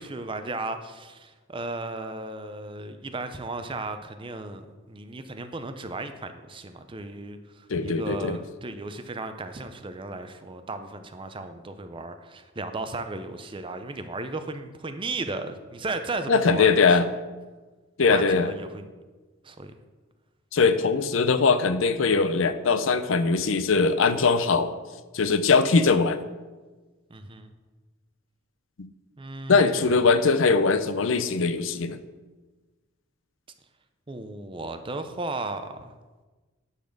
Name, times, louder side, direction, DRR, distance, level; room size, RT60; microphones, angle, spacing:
voice 1, 0.0-4.6 4.9-17.0 18.0-18.9 19.4-19.7 27.1-27.5 29.2-30.0 34.1-35.9, right 2 dB, 25° right, 8 dB, 0.6 m, -35 dB
voice 2, 7.7-8.4 16.3-17.1 18.0-18.5 20.5-24.7 25.1-26.2 29.5-32.0, left 4 dB, 75° left, 12 dB, 0.6 m, -21 dB
10.0 x 4.1 x 6.5 m, 1.3 s
head